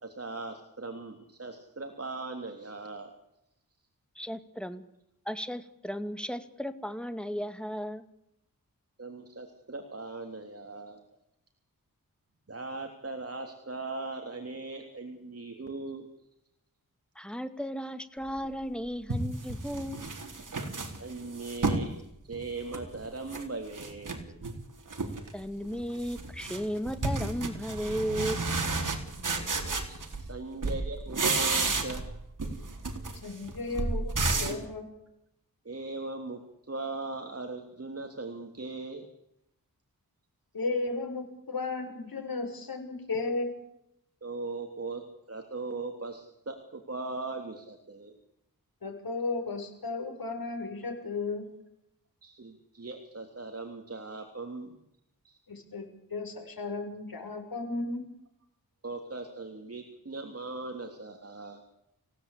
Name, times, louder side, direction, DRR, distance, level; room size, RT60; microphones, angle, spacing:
voice 1, 0.0-3.1 9.0-11.0 12.5-16.1 21.0-21.9 22.3-24.4 29.4-32.0 33.3-33.4 35.7-39.0 44.2-48.1 52.2-54.8 55.2-55.4 58.8-61.6, right 3 dB, 40° right, 4 dB, 3.5 m, -39 dB
voice 2, 4.2-4.8 5.3-8.0 17.2-20.1 25.3-28.4, equal, 5° left, 10 dB, 2.5 m, -35 dB
sound 1, 18.4-18.5 19.1-21.9 22.3-23.4 23.7-24.6 24.9-25.3 25.6-30.4 30.6-32.1 32.4-34.6, right 3 dB, 60° right, 4.2 m, -32 dB
voice 3, 33.2-34.1 34.4-34.9 40.5-43.5 48.8-51.5 55.5-58.0, left 3 dB, 75° left, 4 dB, 6.4 m, -34 dB
28.5 x 17.5 x 8.6 m, 0.82 s
wide cardioid pair, 65°, 36 cm